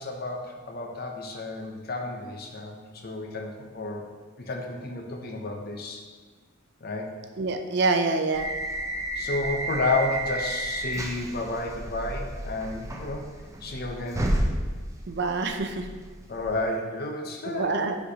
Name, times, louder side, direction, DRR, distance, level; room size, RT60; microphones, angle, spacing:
voice 1, 0.0-4.0 4.4-6.0 6.8-7.1 9.2-13.3 13.6-14.3 16.3-17.8, left 2 dB, 50° left, 2 dB, 0.9 m, -31 dB
voice 2, 7.4-8.5 15.1-15.8 17.5-18.0, right 3 dB, 60° right, 6 dB, 0.5 m, -26 dB
sound 1, 8.3-16.7, right 1 dB, 15° right, 0.6 m, -32 dB
9.9 x 4.4 x 2.9 m, 1.4 s
head